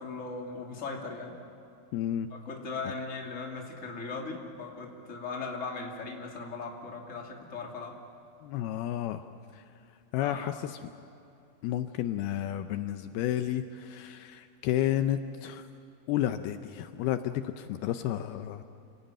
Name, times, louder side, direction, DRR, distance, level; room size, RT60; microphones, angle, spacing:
voice 1, 0.0-1.3 2.3-7.9 10.2-10.5, left 4 dB, 20° left, 0 dB, 2.4 m, -38 dB
voice 2, 1.9-2.3 8.4-9.2 10.1-10.8 11.6-15.6 16.1-18.6, left 12 dB, 80° left, 9 dB, 2.5 m, -31 dB
29.0 x 19.0 x 9.1 m, 2.7 s
omnidirectional pair, 4.7 m